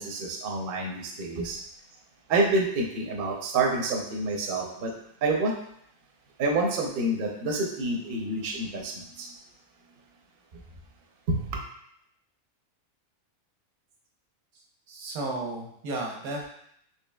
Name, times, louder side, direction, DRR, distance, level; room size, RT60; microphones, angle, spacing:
voice 1, 0.0-1.6 2.3-4.9 5.2-5.5 6.4-9.3 11.3-11.6, right 2 dB, 55° right, 0 dB, 0.6 m, -28 dB
voice 2, 14.9-16.5, right 2 dB, 85° right, 0 dB, 1.3 m, -33 dB
4.4 x 2.7 x 2.2 m, 0.70 s
omnidirectional pair, 1.5 m